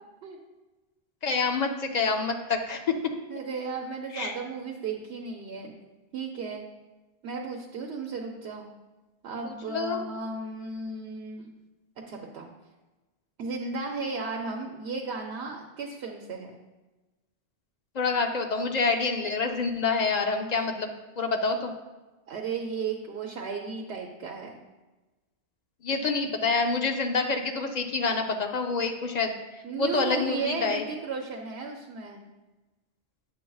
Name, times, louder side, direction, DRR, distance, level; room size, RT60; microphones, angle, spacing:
voice 1, 1.2-3.0 4.1-4.3 9.4-10.0 17.9-21.7 25.8-30.8, left 4 dB, 50° left, 4 dB, 0.6 m, -27 dB
voice 2, 3.3-5.7 6.1-6.6 7.2-8.7 9.2-11.5 12.1-12.5 13.4-16.5 22.3-24.5 29.6-32.2, right 4 dB, 90° right, 1 dB, 0.9 m, -34 dB
8.5 x 6.3 x 2.3 m, 1.2 s
omnidirectional pair, 1.1 m